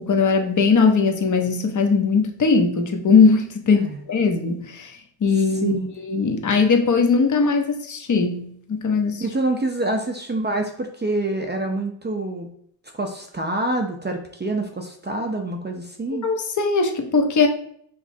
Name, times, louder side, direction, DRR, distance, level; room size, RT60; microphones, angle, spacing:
voice 1, 0.0-9.2 16.2-17.5, left 4 dB, 40° left, 5 dB, 0.8 m, -20 dB
voice 2, 5.4-5.9 9.2-12.5 12.9-16.2, right 2 dB, 20° right, 2 dB, 0.6 m, -26 dB
5.0 x 3.1 x 2.7 m, 0.65 s
cardioid pair, 70°, 47 cm